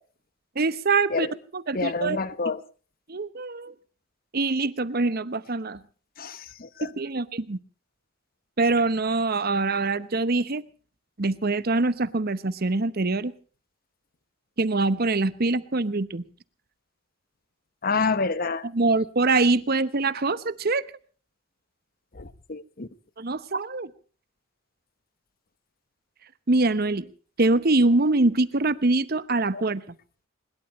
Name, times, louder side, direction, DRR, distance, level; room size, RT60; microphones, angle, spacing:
voice 1, 0.5-1.3 1.5-2.2 3.1-3.7 4.3-5.8 6.8-7.6 8.6-10.6 11.2-13.3 14.6-16.2 18.7-20.8 23.2-23.9 26.5-27.1 27.4-29.8, right 3 dB, 50° right, 1.0 m, -24 dB
voice 2, 1.7-2.6 6.2-6.9 17.8-18.7 22.1-22.9 29.5-29.6, left 4 dB, 45° left, 1.0 m, -28 dB
21.5 x 21.0 x 3.2 m
head